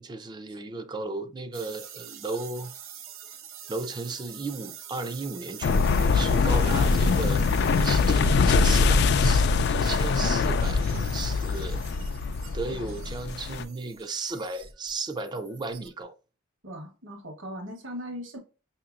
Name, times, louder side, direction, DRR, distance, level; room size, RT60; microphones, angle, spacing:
voice 1, 0.0-2.7 3.7-7.4 7.8-11.8 12.5-16.1, right 3 dB, 20° right, 0.4 m, -35 dB
sound 1, 1.5-16.0, right 9 dB, 80° right, 0.7 m, -46 dB
sound 2, 5.6-13.6, left 4 dB, 55° left, 0.3 m, -23 dB
voice 2, 6.5-7.0 10.0-10.2 16.6-18.4, equal, 65° right, 1.2 m, -39 dB
5.6 x 2.8 x 2.4 m
head